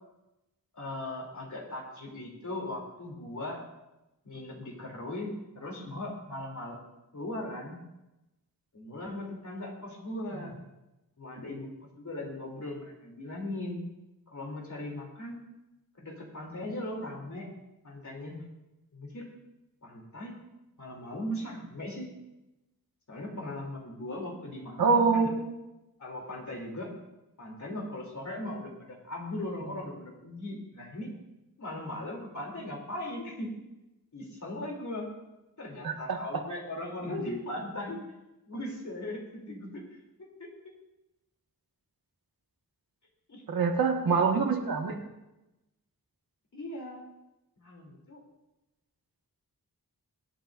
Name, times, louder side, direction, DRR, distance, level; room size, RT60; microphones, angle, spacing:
voice 1, 0.7-3.6 4.2-6.7 7.1-7.8 8.7-10.6 11.2-11.7 12.0-13.8 14.3-15.4 15.9-17.5 17.8-18.4 18.9-19.3 19.8-20.4 20.8-22.1 23.1-25.3 26.0-26.9 27.4-31.1 31.6-33.5 34.1-35.1 35.6-38.0 38.5-40.5 43.3-43.4 46.5-47.0 47.6-48.2, left 1 dB, 55° left, -1 dB, 3.2 m, -38 dB
voice 2, 24.8-25.5 35.8-36.2 43.5-45.0, right 5 dB, 75° right, 2 dB, 1.7 m, -25 dB
23.5 x 8.7 x 2.6 m, 0.97 s
wide cardioid pair, 90°, 35 cm